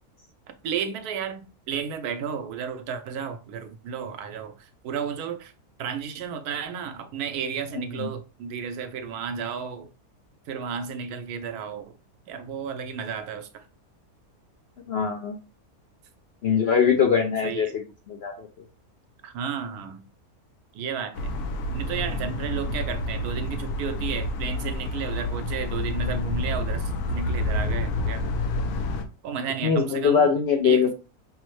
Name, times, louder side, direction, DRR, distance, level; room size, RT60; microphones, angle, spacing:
voice 1, 0.6-5.5 5.8-9.9 10.5-12.0 12.3-13.6 17.4-17.7 19.2-20.1 20.7-21.3 21.7-28.3 29.2-30.3 30.6-30.9, right 7 dB, 85° right, 1.1 m, -33 dB
voice 2, 7.8-8.1 14.9-15.4 16.4-17.8 18.1-18.5 29.6-30.9, left 6 dB, 70° left, 0.6 m, -22 dB
sound 1, 21.2-29.1, left 2 dB, 90° left, 1.1 m, -28 dB
5.4 x 2.1 x 3.1 m
omnidirectional pair, 1.6 m